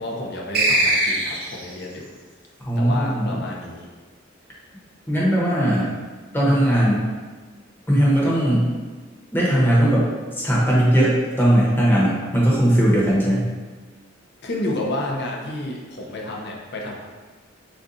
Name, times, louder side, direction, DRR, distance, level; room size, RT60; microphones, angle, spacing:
voice 1, 0.0-2.1 2.8-3.9 14.4-16.9, left 1 dB, 60° left, -1 dB, 0.8 m, -30 dB
sound 1, 0.5-1.7, right 1 dB, 50° right, 0.9 m, -20 dB
voice 2, 2.6-3.4 5.1-5.9 6.3-7.1 7.9-8.7 9.3-13.5, right 1 dB, 10° left, -6 dB, 1.0 m, -19 dB
6.4 x 2.4 x 2.7 m, 1.4 s
head